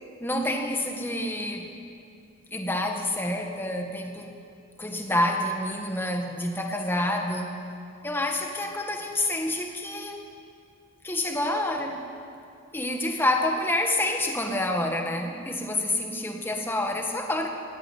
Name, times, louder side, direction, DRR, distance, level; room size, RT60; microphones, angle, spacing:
voice 1, 0.2-1.7 2.5-4.3 4.8-7.6 8.0-10.3 11.0-12.0 12.7-17.5, left 1 dB, 10° left, 3 dB, 1.7 m, -28 dB
17.5 x 17.0 x 9.5 m, 2.5 s
head